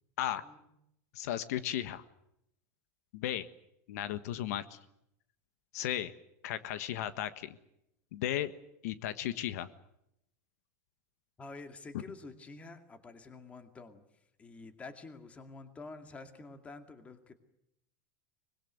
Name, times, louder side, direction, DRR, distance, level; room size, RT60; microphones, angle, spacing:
voice 1, 1.1-2.0 3.1-3.5 3.9-4.8 5.7-6.1 6.4-7.5 8.1-8.5 8.8-9.7, left 12 dB, 75° left, 13 dB, 1.5 m, -35 dB
voice 2, 11.4-14.1 14.4-17.3, left 3 dB, 15° left, 8 dB, 2.3 m, -48 dB
24.5 x 21.5 x 8.0 m, 0.79 s
supercardioid pair, 160°, 9 cm